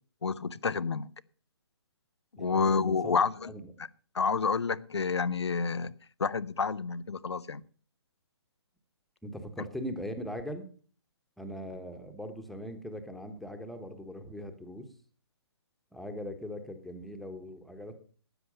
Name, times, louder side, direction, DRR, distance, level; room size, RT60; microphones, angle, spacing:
voice 1, 0.2-1.1 2.4-3.5 4.1-5.9 6.2-7.6, left 5 dB, 90° left, 18 dB, 0.7 m, -29 dB
voice 2, 2.4-2.8 3.0-3.1 3.4-3.6 9.2-10.7 11.4-14.9 15.9-17.9, equal, ahead, 6 dB, 1.3 m, -40 dB
13.0 x 9.7 x 5.4 m, 0.42 s
hypercardioid pair, 140°, 14 cm